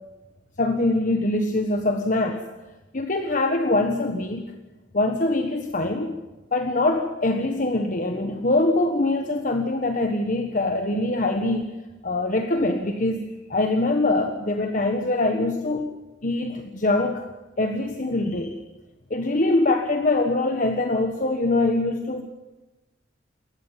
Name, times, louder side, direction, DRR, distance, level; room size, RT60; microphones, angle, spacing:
voice 1, 0.6-2.4 2.9-4.5 4.9-6.1 6.5-11.7 12.0-15.9 16.2-17.2 17.6-18.6 19.1-22.2, left 2 dB, 45° left, 5 dB, 1.5 m, -23 dB
28.0 x 14.5 x 7.4 m, 1.1 s
head